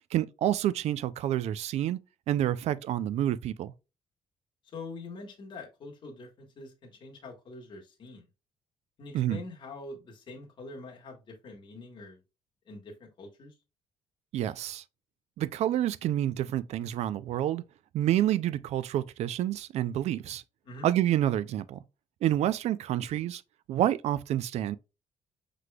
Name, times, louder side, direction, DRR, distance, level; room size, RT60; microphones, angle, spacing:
voice 1, 0.1-2.0 2.3-3.7 9.1-9.4 14.3-14.8 15.4-17.6 17.9-20.4 20.8-21.8 22.2-23.4 23.7-24.8, right 12 dB, 65° right, 0.4 m, -28 dB
voice 2, 4.7-8.3 9.0-12.2 12.7-13.5 20.6-20.9, left 3 dB, 45° left, 1.3 m, -44 dB
5.9 x 3.3 x 2.3 m
cardioid pair, 150°, 12 cm